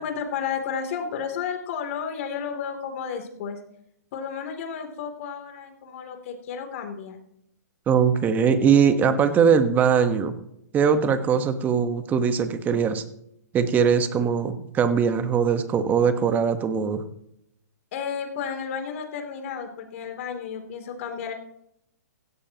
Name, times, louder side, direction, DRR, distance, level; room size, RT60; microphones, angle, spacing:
voice 1, 0.0-3.6 4.1-7.2 17.9-21.3, left 7 dB, 50° left, 5 dB, 3.0 m, -32 dB
voice 2, 7.9-10.4 10.7-13.0 13.5-17.0, right 6 dB, 20° right, 9 dB, 1.3 m, -21 dB
16.5 x 15.5 x 3.0 m, 0.77 s
hypercardioid pair, 140°, 9 cm